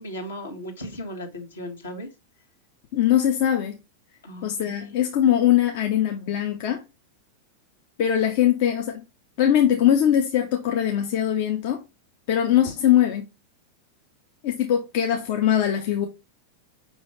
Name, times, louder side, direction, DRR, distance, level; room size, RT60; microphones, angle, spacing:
voice 1, 0.0-2.1 4.2-4.9, equal, 70° left, 1.3 m, -36 dB
voice 2, 2.9-3.8 4.4-6.8 8.0-9.0 9.4-11.8 12.3-13.3 14.4-16.1, left 10 dB, 50° left, 0.6 m, -21 dB
5.5 x 2.9 x 3.1 m
figure-of-eight pair, 90°, 0 cm